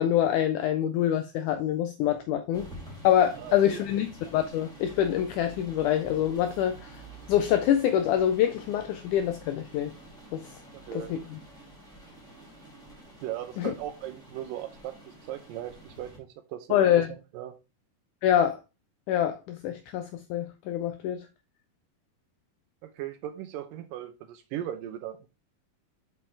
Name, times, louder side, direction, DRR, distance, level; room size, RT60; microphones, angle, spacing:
voice 1, 0.0-2.7 3.0-4.1 4.3-7.0 7.3-9.9 10.3-10.6 10.9-11.4 13.6-13.7 16.7-17.1 18.2-18.6 19.1-21.2, left 10 dB, 85° left, 1.8 m, -25 dB
sound 1, 2.5-16.2, right 1 dB, ahead, 2.2 m, -48 dB
voice 2, 3.4-3.8 10.7-11.1 13.2-17.5 22.8-25.3, right 12 dB, 80° right, 2.2 m, -38 dB
6.1 x 5.7 x 3.2 m
omnidirectional pair, 4.1 m